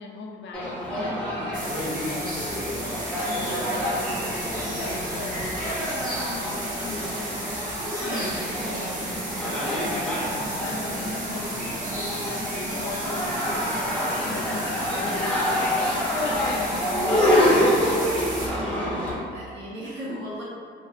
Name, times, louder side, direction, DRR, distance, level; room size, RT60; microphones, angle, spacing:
voice 1, 0.0-4.1 4.4-7.5 7.9-9.2 9.7-13.8 14.2-15.5 16.0-18.4, left 4 dB, 65° left, 1 dB, 0.4 m, -39 dB
sound 1, 0.5-19.1, equal, 5° left, 0.6 m, -27 dB
sound 2, 1.5-18.5, right 1 dB, 40° right, 0.7 m, -34 dB
voice 2, 8.0-8.4 18.4-18.8 19.0-20.4, right 1 dB, 70° right, -10 dB, 0.9 m, -37 dB
2.5 x 2.3 x 2.4 m, 2.1 s
cardioid pair, 90°, 20 cm